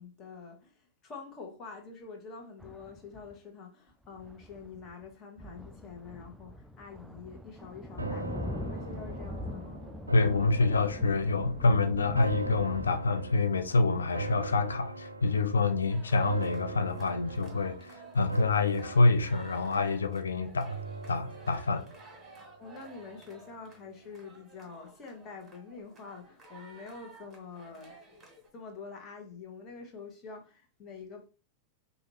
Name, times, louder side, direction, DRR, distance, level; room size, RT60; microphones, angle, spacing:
voice 1, 0.0-9.8 22.6-27.9 28.5-31.3, left 5 dB, 30° left, 1.3 m, -46 dB
sound 1, 2.6-3.4 4.0-5.1 5.4-13.0, left 1 dB, ahead, 0.4 m, -42 dB
sound 2, 8.0-23.3 23.7-23.8, right 2 dB, 80° right, 0.4 m, -41 dB
voice 2, 10.1-20.7 21.1-21.9, left 3 dB, 75° left, 0.4 m, -27 dB
sound 3, 15.9-28.5, right 3 dB, 20° right, 1.6 m, -55 dB
4.8 x 2.6 x 3.1 m
figure-of-eight pair, 90°, 0 cm